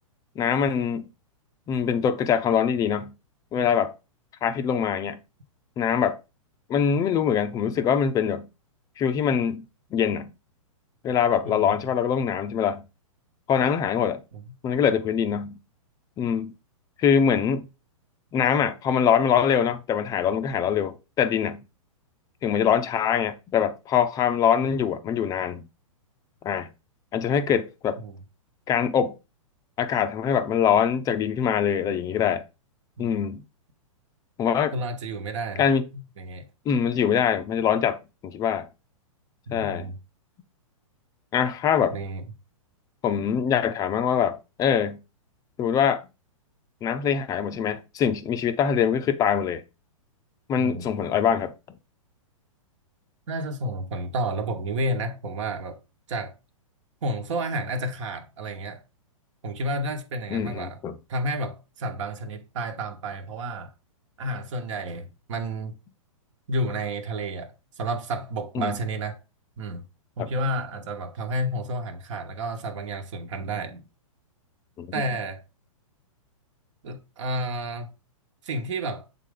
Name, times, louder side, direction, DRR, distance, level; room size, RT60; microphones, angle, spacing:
voice 1, 0.4-1.1 1.7-3.1 3.5-3.9 4.4-5.2 5.8-6.2 6.7-8.5 9.0-9.7 9.9-10.3 11.0-12.8 13.5-14.2 14.6-15.6 16.2-16.5 17.0-17.7 18.3-21.6 22.4-25.7 26.4-26.7 27.1-28.0 28.7-29.1 29.8-32.4 33.0-33.4 34.4-34.7 35.6-35.8 36.7-38.7 39.5-39.9 41.3-42.0 43.0-45.0 45.6-46.1 46.8-49.6 50.5-51.5 60.3-61.0 68.5-68.7 70.2-70.3 74.8-74.9, left 8 dB, 20° left, 0.5 m, -23 dB
voice 2, 11.4-11.7 14.3-14.4 28.0-28.1 33.0-33.2 34.7-35.6 35.9-36.5 39.5-40.0 41.9-42.2 50.6-50.9 53.3-55.8 56.1-56.4 57.0-58.8 59.4-60.8 61.1-63.7 64.2-65.8 66.5-69.2 69.6-69.9 70.2-73.9 74.9-75.4 76.8-77.9 78.4-79.0, right 1 dB, 60° right, 1.2 m, -31 dB
7.5 x 3.7 x 3.7 m
hypercardioid pair, 130°, 18 cm